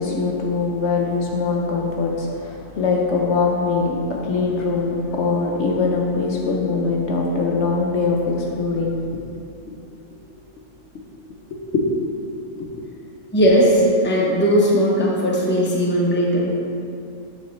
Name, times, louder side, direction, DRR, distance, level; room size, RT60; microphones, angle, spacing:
voice 1, 0.0-9.0 11.7-12.1, left 4 dB, 65° left, -1 dB, 0.9 m, -22 dB
voice 2, 13.3-16.5, equal, 10° left, -5 dB, 0.7 m, -18 dB
7.2 x 5.2 x 3.1 m, 2.7 s
omnidirectional pair, 1.4 m